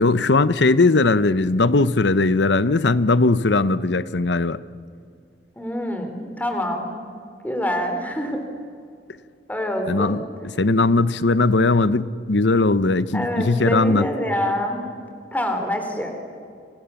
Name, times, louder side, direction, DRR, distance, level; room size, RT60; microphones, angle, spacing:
voice 1, 0.0-4.6 9.9-10.2 10.6-14.1, left 3 dB, 80° left, 15 dB, 0.9 m, -19 dB
voice 2, 5.6-6.9 7.4-8.4 9.5-10.2 13.1-14.8 15.3-16.1, equal, 10° left, 4 dB, 3.8 m, -25 dB
29.0 x 27.0 x 7.1 m, 2.2 s
head